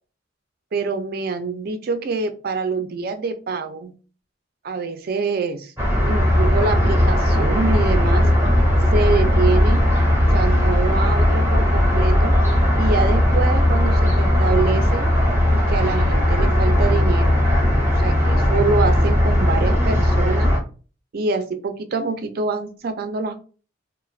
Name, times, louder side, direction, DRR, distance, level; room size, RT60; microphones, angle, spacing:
voice 1, 0.7-3.9 4.6-5.7 6.1-8.3 8.9-9.8 10.2-12.4 12.8-15.1 15.5-17.4 17.8-20.5 21.1-23.4, right 4 dB, 50° right, 9 dB, 0.4 m, -25 dB
sound 1, 5.8-20.6, left 1 dB, 15° right, 0.7 m, -17 dB
2.3 x 2.1 x 3.1 m, 0.37 s
head